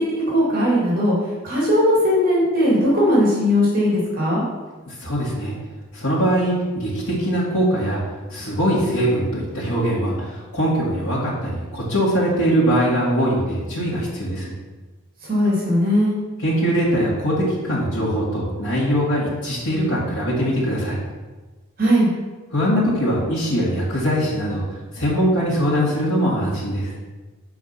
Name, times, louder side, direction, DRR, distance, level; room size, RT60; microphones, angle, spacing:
voice 1, 0.1-1.1 1.4-4.4 15.2-16.2 21.8-22.1, equal, 40° right, -5 dB, 2.2 m, -18 dB
voice 2, 4.9-5.5 5.9-8.0 8.3-14.6 16.4-21.0 22.5-24.6 24.9-26.9, equal, 80° left, -8 dB, 2.0 m, -22 dB
6.6 x 4.7 x 5.8 m, 1.3 s
head